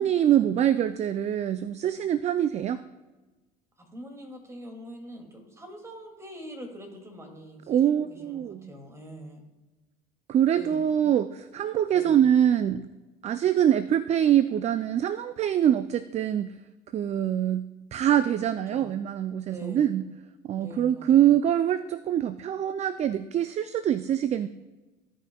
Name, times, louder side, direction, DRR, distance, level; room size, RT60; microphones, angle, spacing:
voice 1, 0.0-2.8 7.7-8.7 10.3-12.9 13.2-16.5 16.9-20.1 20.5-24.5, right 10 dB, 35° right, 14 dB, 0.4 m, -24 dB
voice 2, 3.8-9.4 10.5-11.1 11.9-12.3 18.7-18.9 19.5-20.0 20.5-21.3, equal, 15° right, 2 dB, 2.4 m, -44 dB
16.5 x 5.6 x 2.3 m, 1.2 s
hypercardioid pair, 75°, 20 cm